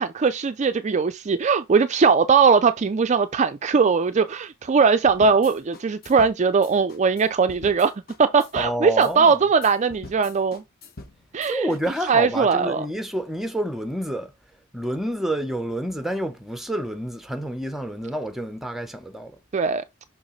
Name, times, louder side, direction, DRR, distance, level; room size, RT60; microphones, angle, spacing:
voice 1, 0.0-7.9 8.2-10.6 11.3-11.7 12.1-12.9 19.5-19.8, right 5 dB, 30° right, 0.4 m, -20 dB
sound 1, 5.1-11.8, left 2 dB, 40° left, 1.3 m, -44 dB
voice 2, 8.5-9.4 11.5-14.3 14.7-19.3, right 1 dB, ahead, 0.8 m, -28 dB
6.3 x 5.7 x 3.1 m
head